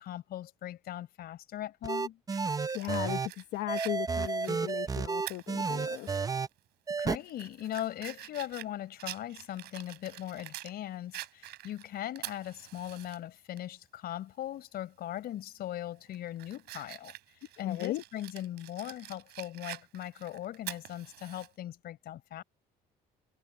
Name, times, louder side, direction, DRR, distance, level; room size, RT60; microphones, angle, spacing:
voice 1, 0.0-2.2 7.0-17.1 17.6-22.4, left 12 dB, 65° left, 4.7 m, -39 dB
sound 1, 1.8-3.3 3.7-6.5 6.9-7.2, right 4 dB, 20° right, 0.6 m, -32 dB
Fire, 2.3-6.2 6.6-6.7 7.2-10.7 11.1-13.2 13.6-13.7 15.2-15.4 15.9-21.5, right 16 dB, 80° right, 3.4 m, -46 dB
voice 2, 2.7-3.2 3.5-6.1 17.6-18.0, left 16 dB, 85° left, 1.2 m, -36 dB
cardioid pair, 110°, 17 cm